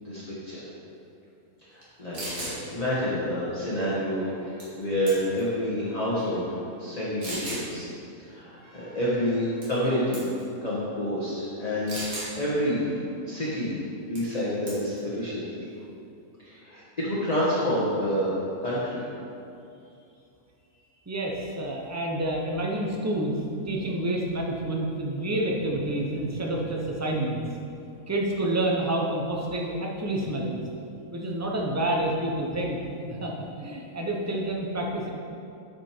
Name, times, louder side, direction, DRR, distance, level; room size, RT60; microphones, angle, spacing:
voice 1, 0.0-0.7 1.7-7.9 8.3-10.2 10.6-13.0 13.3-13.8 14.1-15.5 16.4-18.3 18.6-19.0, equal, 25° left, -8 dB, 1.3 m, -28 dB
sound 1, 1.8-1.9 2.1-2.6 4.6-4.8 5.1-5.5 6.2-6.3 7.2-7.7 9.6-9.9 10.1-10.4 11.9-12.3 14.2-14.4 14.7-15.0, right 1 dB, 60° right, 2.3 m, -35 dB
voice 2, 21.1-23.3 23.6-27.4 28.1-30.6 31.1-35.1, right 1 dB, 20° right, -1 dB, 0.5 m, -28 dB
8.9 x 5.3 x 4.4 m, 2.6 s
omnidirectional pair, 1.6 m